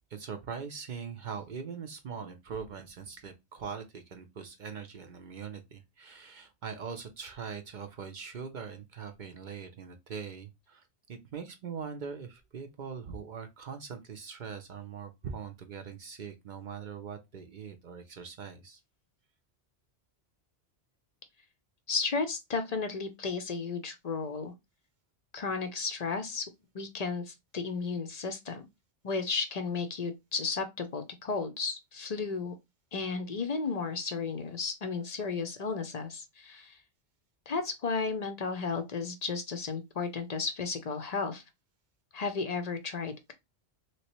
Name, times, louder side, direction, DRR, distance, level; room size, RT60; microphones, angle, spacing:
voice 1, 0.1-18.8, right 6 dB, 55° right, 0.6 m, -42 dB
voice 2, 21.9-24.5 25.3-26.5 26.7-28.7 29.0-32.5 32.9-36.8 37.5-41.4 42.1-43.3, left 4 dB, 50° left, 0.5 m, -33 dB
3.1 x 3.0 x 2.9 m
omnidirectional pair, 1.1 m